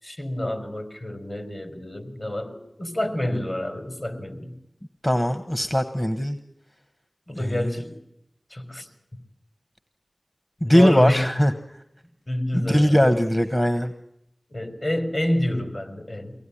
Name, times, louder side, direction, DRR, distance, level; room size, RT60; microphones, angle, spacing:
voice 1, 0.0-4.5 7.3-7.9 8.5-8.9 10.6-11.4 12.3-13.2 14.5-16.3, left 1 dB, 50° left, 6 dB, 4.4 m, -28 dB
voice 2, 5.0-6.4 7.4-7.7 10.6-11.5 12.5-13.9, equal, 25° left, 9 dB, 1.2 m, -20 dB
24.0 x 18.0 x 10.0 m, 0.83 s
wide cardioid pair, 55°, 0 cm